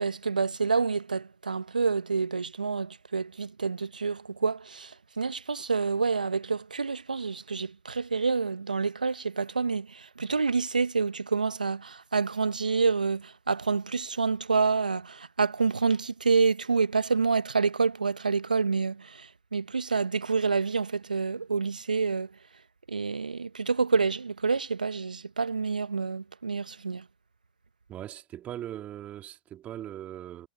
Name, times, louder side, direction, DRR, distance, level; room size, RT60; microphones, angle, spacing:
voice 1, 0.0-22.3 22.9-27.0, right 4 dB, 85° right, 1.2 m, -28 dB
voice 2, 27.9-30.5, right 12 dB, 30° right, 2.4 m, -40 dB
figure-of-eight pair, 100°, 4 cm